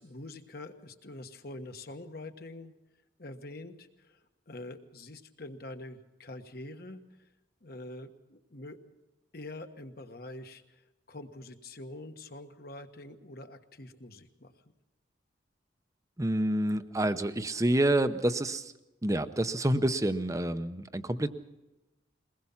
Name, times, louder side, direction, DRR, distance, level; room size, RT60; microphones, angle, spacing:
voice 1, 0.0-2.7 3.2-7.3 7.6-8.8 9.3-10.8 11.1-14.5, left 2 dB, 50° left, 7 dB, 1.4 m, -45 dB
voice 2, 16.2-18.7 19.0-21.3, right 1 dB, 15° right, 10 dB, 0.7 m, -28 dB
22.5 x 20.0 x 5.8 m, 1.0 s
head